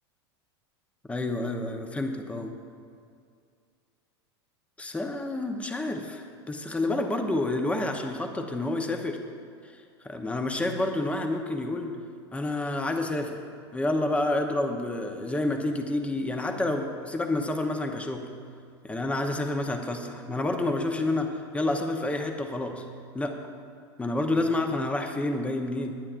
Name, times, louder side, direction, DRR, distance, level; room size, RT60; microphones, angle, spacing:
voice 1, 1.1-2.6 4.8-9.2 10.0-11.9 12.3-13.4 13.7-18.3 18.8-22.8 23.1-23.4 24.0-25.9, left 2 dB, 10° left, 4 dB, 1.0 m, -29 dB
21.0 x 9.9 x 2.6 m, 2.3 s
hypercardioid pair, 105°, 14 cm